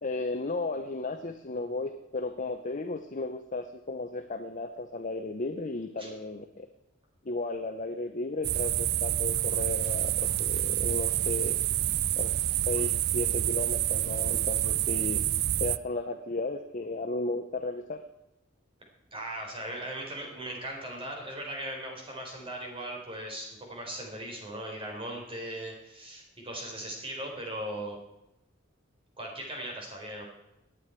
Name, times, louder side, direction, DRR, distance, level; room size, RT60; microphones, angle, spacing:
voice 1, 0.0-6.7 7.2-11.6 12.2-15.2 15.6-18.0, left 2 dB, 40° left, 7 dB, 0.8 m, -34 dB
sound 1, 8.4-15.8, right 13 dB, 55° right, 0.4 m, -28 dB
voice 2, 19.1-28.0 29.2-30.2, right 1 dB, 30° right, 0 dB, 4.3 m, -38 dB
18.5 x 9.3 x 4.6 m, 0.88 s
head